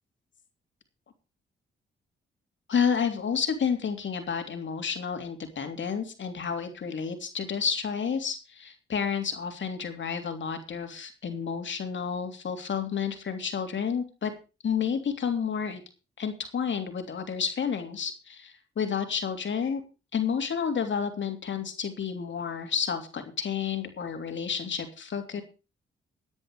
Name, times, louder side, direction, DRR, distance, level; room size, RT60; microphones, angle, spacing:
voice 1, 2.7-14.3 14.6-15.8 16.2-19.8 20.1-25.4, left 7 dB, 60° left, 6 dB, 3.1 m, -30 dB
14.5 x 9.6 x 5.0 m, 0.32 s
supercardioid pair, 55°, 21 cm